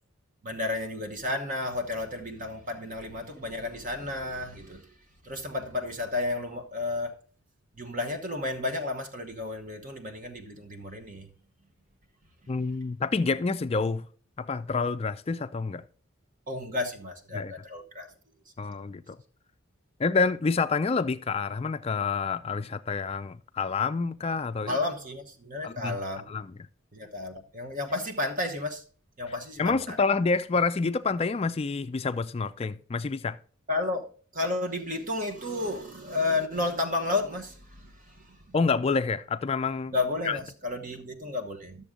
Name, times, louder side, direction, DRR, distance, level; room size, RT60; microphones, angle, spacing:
voice 1, 0.4-4.9 5.2-7.1 7.8-11.3 16.5-18.1 24.7-26.3 26.9-28.8 29.2-30.0 33.7-34.0 34.3-38.5 39.9-41.8, left 2 dB, 40° right, 1.1 m, -32 dB
voice 2, 12.5-14.0 14.4-15.8 17.3-17.5 18.6-19.2 20.0-24.8 25.6-26.0 26.3-26.5 29.6-33.4 38.5-39.9 40.3-40.4, left 4 dB, 30° left, 0.3 m, -28 dB
12.0 x 7.0 x 3.7 m
head